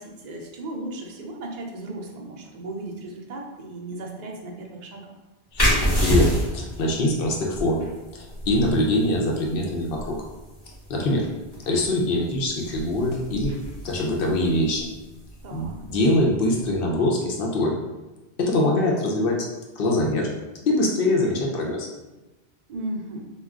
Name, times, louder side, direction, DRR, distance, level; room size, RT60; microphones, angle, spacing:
voice 1, 0.0-5.1 15.4-15.8 22.7-23.3, right 2 dB, 55° right, 0 dB, 0.5 m, -36 dB
sound 1, 5.6-16.8, equal, 25° left, 0.7 m, -29 dB
voice 2, 6.0-7.9 8.1-10.2 10.9-11.3 11.7-14.9 15.5-17.7 18.4-19.4 19.8-20.3 20.7-21.9, left 1 dB, 65° left, -1 dB, 0.7 m, -23 dB
2.2 x 2.2 x 3.5 m, 1.1 s
omnidirectional pair, 1.1 m